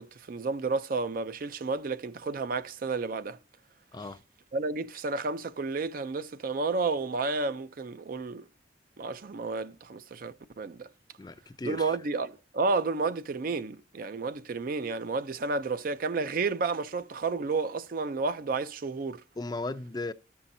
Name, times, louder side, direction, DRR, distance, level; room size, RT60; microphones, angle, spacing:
voice 1, 0.0-3.4 4.5-8.4 9.0-10.9 11.6-19.2, right 4 dB, 50° right, 0.4 m, -31 dB
voice 2, 3.9-4.2 11.2-12.0 19.4-20.1, left 2 dB, 25° left, 0.4 m, -36 dB
13.0 x 5.6 x 2.6 m
head